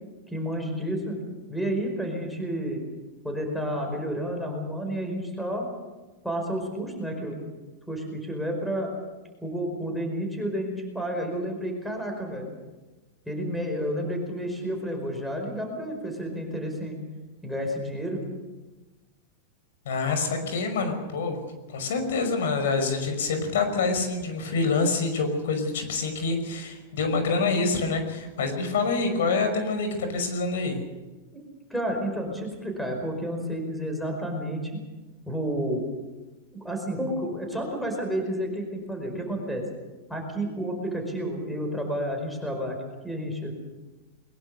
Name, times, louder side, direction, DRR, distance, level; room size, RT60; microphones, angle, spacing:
voice 1, 0.3-1.2 1.5-2.8 3.2-5.7 6.2-7.4 7.9-8.9 9.4-12.5 13.3-17.0 17.4-18.2 31.3-31.4 31.7-34.8 35.2-35.9 36.5-39.6 40.1-42.8 43.0-43.5, equal, ahead, 2 dB, 4.9 m, -30 dB
voice 2, 19.9-21.4 21.7-30.8, left 4 dB, 85° left, 7 dB, 5.8 m, -26 dB
22.0 x 21.5 x 6.8 m, 1.2 s
supercardioid pair, 160°, 0 cm